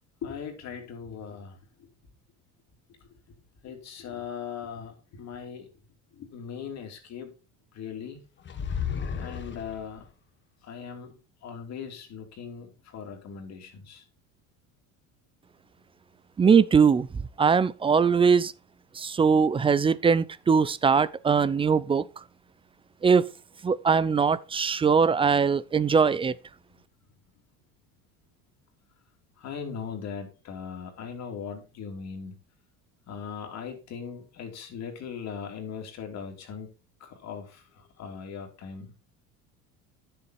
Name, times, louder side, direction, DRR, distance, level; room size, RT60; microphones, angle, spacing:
voice 1, 0.2-1.9 3.0-3.4 3.6-5.7 6.1-7.3 7.7-8.2 9.1-10.1 10.6-14.0 26.7-26.8 29.4-32.4 33.1-36.7 37.0-38.9, left 6 dB, 50° left, 2.9 m, -39 dB
sound 1, 8.5-10.1, left 7 dB, 35° left, 1.3 m, -33 dB
voice 2, 16.4-17.1 17.4-18.5 19.0-22.1 23.0-23.3 23.6-26.3, right 6 dB, 15° right, 0.4 m, -21 dB
10.0 x 7.1 x 4.3 m
supercardioid pair, 110°, 34 cm